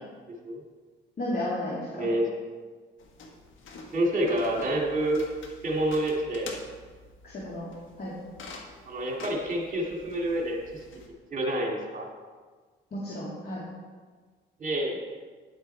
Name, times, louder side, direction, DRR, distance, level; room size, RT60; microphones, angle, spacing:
voice 1, 1.2-2.1 7.2-7.7 8.0-8.1 12.9-13.6, left 1 dB, 50° left, -7 dB, 2.7 m, -33 dB
voice 2, 1.9-2.3 3.9-5.2 5.6-6.6 8.8-10.8 11.3-12.1 14.6-15.0, right 1 dB, 40° right, -1 dB, 2.2 m, -28 dB
sound 1, 3.0-11.1, left 3 dB, 80° left, 1.5 m, -47 dB
10.0 x 7.9 x 4.5 m, 1.5 s
cardioid pair, 90°, 20 cm